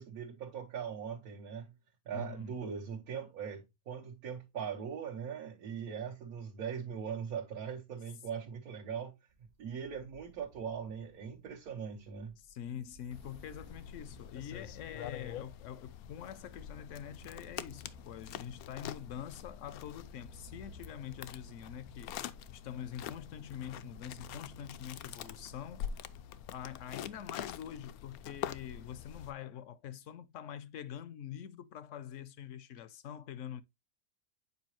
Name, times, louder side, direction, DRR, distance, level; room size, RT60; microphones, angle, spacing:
voice 1, 0.0-1.7 2.1-9.1 9.6-12.3, right 7 dB, 80° right, 1.5 m, -40 dB
voice 2, 2.1-2.6 12.4-25.9 26.5-33.6, left 9 dB, 65° left, 0.9 m, -45 dB
sound 1, 9.3-26.5, right 3 dB, 55° right, 1.0 m, -59 dB
sound 2, 13.1-29.3, left 10 dB, 85° left, 1.1 m, -45 dB
8.3 x 4.8 x 3.0 m
omnidirectional pair, 1.5 m